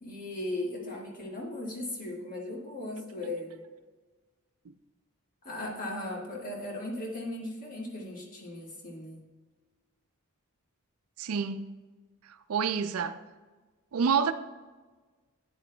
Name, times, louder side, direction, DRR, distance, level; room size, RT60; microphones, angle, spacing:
voice 1, 0.0-3.6 5.4-9.2, left 1 dB, 40° left, 1.6 m, -37 dB
voice 2, 11.2-11.7 12.3-13.2 13.9-14.3, right 6 dB, 75° right, 0.4 m, -28 dB
9.3 x 8.1 x 2.2 m
head